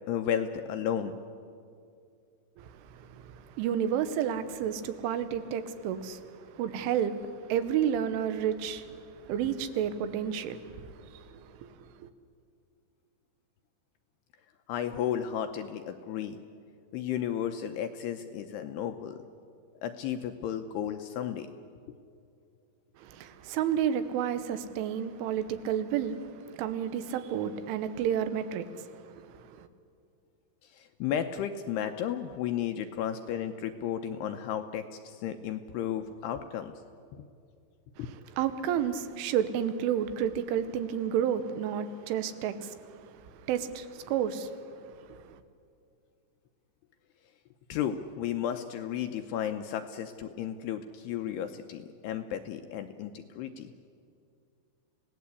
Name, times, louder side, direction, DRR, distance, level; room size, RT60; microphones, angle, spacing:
voice 1, 0.1-1.2 14.7-16.4 16.9-19.2 19.8-21.5 30.7-36.7 37.1-37.3 38.0-38.1 47.7-53.7, left 9 dB, 80° left, 2.5 m, -33 dB
voice 2, 2.6-12.1 23.0-29.7 38.0-38.1 38.4-44.6 45.1-45.2, right 9 dB, 85° right, 3.6 m, -31 dB
28.0 x 17.5 x 8.3 m
omnidirectional pair, 5.5 m